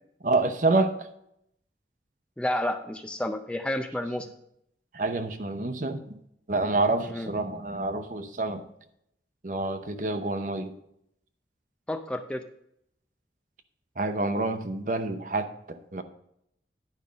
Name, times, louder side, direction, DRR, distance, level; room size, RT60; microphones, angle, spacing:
voice 1, 0.2-1.1 4.9-6.2 6.5-8.6 9.4-10.7 14.0-16.0, right 2 dB, 45° right, 8 dB, 0.8 m, -28 dB
voice 2, 2.4-4.3 7.0-7.3 11.9-12.4, left 1 dB, 5° left, 6 dB, 0.4 m, -30 dB
10.5 x 5.4 x 5.1 m, 0.74 s
head